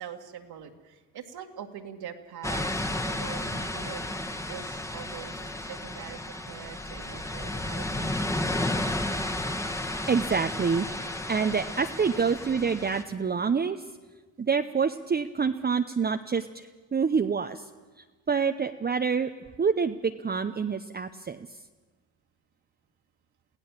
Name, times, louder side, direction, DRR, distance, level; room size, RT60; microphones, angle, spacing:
voice 1, 0.0-4.0 4.5-6.2 6.5-8.2, right 9 dB, 65° right, 3 dB, 2.1 m, -43 dB
sound 1, 2.4-13.0, left 1 dB, 5° left, 1.5 m, -32 dB
voice 2, 10.1-13.8 14.4-17.6 18.3-19.3 19.6-21.5, right 5 dB, 25° right, 7 dB, 0.8 m, -27 dB
23.5 x 16.0 x 7.4 m, 1.3 s
supercardioid pair, 75°, 41 cm